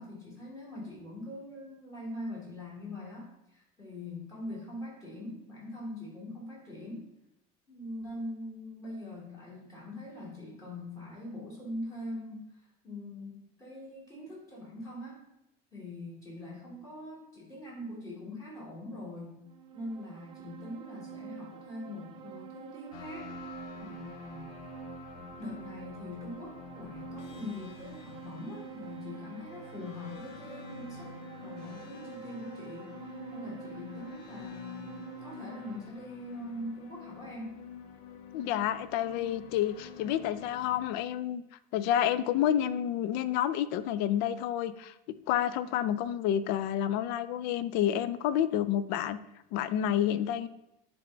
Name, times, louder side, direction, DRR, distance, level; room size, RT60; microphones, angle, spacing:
voice 1, 0.0-7.1 7.7-15.2 15.7-19.4 19.7-23.3 23.8-24.6 25.2-31.1 31.4-32.9 33.3-37.6, left 1 dB, 15° left, -6 dB, 2.5 m, -43 dB
sound 1, 19.5-35.8, right 9 dB, 25° right, 0.4 m, -47 dB
sound 2, 22.9-40.9, left 6 dB, 85° left, 0.9 m, -47 dB
voice 2, 38.3-41.4 41.7-44.9 45.3-49.2 49.5-50.5, left 10 dB, 60° left, 14 dB, 0.4 m, -29 dB
10.0 x 3.5 x 3.8 m, 0.84 s
cardioid pair, 170°, 19 cm